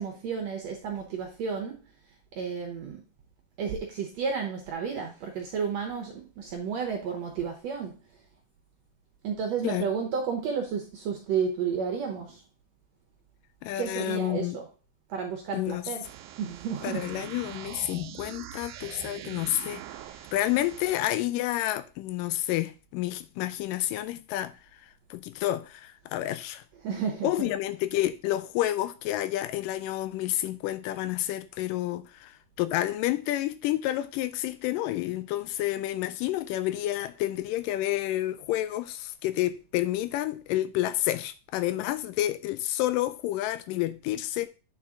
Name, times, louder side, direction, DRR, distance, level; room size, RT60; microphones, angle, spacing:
voice 1, 0.0-1.8 2.3-3.0 3.6-7.9 9.2-12.4 13.8-14.6 15.1-16.1 16.4-17.2 26.8-27.5, right 6 dB, 70° right, 1.7 m, -32 dB
voice 2, 13.6-14.6 15.5-15.8 16.8-19.8 20.3-24.5 25.1-26.6 27.2-44.5, left 14 dB, 85° left, 2.1 m, -29 dB
sound 1, 16.0-21.0, right 12 dB, 90° right, 2.3 m, -43 dB
9.0 x 4.4 x 3.7 m
omnidirectional pair, 3.9 m